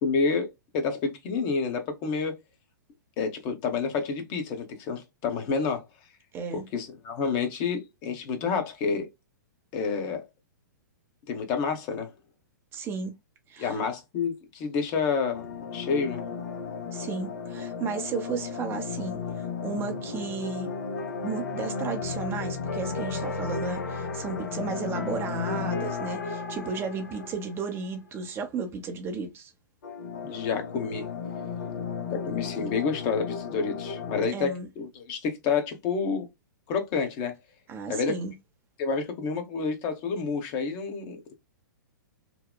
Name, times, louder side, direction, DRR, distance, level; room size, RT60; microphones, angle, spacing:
voice 1, 0.0-2.4 3.2-5.8 6.5-9.1 9.7-10.2 11.3-12.1 13.6-15.5 15.7-16.2 30.2-31.1 32.1-36.3 36.7-37.4 37.9-38.1 38.8-41.3, left 5 dB, 35° left, 0.8 m, -29 dB
voice 2, 6.3-6.6 12.7-13.1 13.5-13.8 16.9-20.7 21.2-29.5 34.3-34.7 37.7-38.3, right 5 dB, 20° right, 0.5 m, -34 dB
sound 1, 15.3-27.9 29.8-34.3, left 5 dB, 70° left, 0.8 m, -34 dB
2.9 x 2.1 x 2.2 m
figure-of-eight pair, 115°, 10 cm